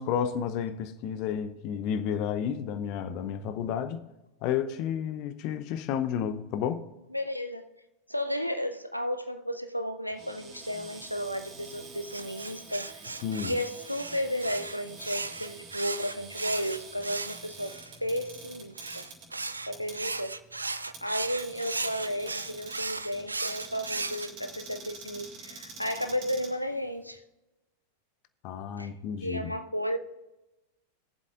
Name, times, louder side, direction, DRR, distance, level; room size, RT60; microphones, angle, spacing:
voice 1, 0.0-4.0 4.4-6.8 13.2-13.5 28.4-29.5, left 8 dB, 40° left, 0.7 m, -31 dB
voice 2, 7.1-7.7 8.1-13.0 13.4-17.8 18.0-19.1 19.7-20.4 21.0-27.2 28.8-28.9 29.2-30.0, equal, 90° left, 0.6 m, -33 dB
Cupboard open or close, 10.1-27.2, right 4 dB, 35° right, 4.0 m, -47 dB
sound 1, 12.1-17.9 18.8-24.3, right 3 dB, 80° right, 0.4 m, -36 dB
21.5 x 7.5 x 2.5 m
figure-of-eight pair, 90°, 0 cm